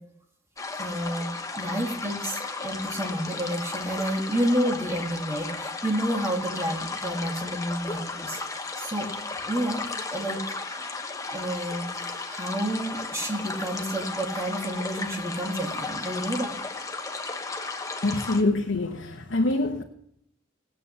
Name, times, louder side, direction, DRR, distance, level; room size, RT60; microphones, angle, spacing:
sound 1, 0.6-18.4, left 3 dB, 15° left, 1.1 m, -34 dB
voice 1, 0.8-1.3 1.6-8.4 8.8-9.1 9.5-9.8 10.1-10.4 11.3-11.9 12.3-16.6, right 1 dB, 15° right, 2 dB, 2.0 m, -29 dB
voice 2, 18.0-19.8, left 2 dB, 65° left, 2 dB, 1.1 m, -25 dB
18.0 x 8.4 x 6.9 m, 0.76 s
head